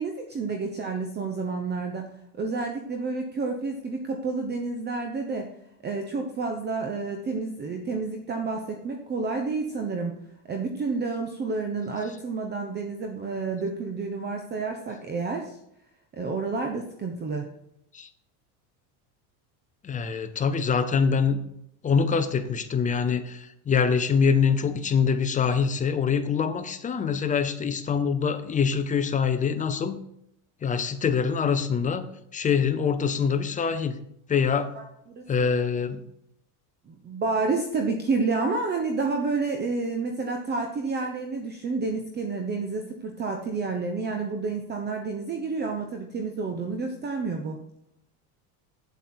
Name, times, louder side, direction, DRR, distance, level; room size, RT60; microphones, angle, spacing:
voice 1, 0.0-2.1 2.4-5.5 5.8-10.1 10.4-15.6 16.1-17.5 34.7-35.5 36.9-47.6, right 4 dB, 25° right, 4 dB, 0.9 m, -30 dB
voice 2, 19.8-21.4 21.8-30.0 30.6-32.1 32.3-34.0 34.3-34.7 35.3-36.0, left 6 dB, 20° left, 10 dB, 0.6 m, -24 dB
8.1 x 7.9 x 4.4 m, 0.76 s
cardioid pair, 140°, 44 cm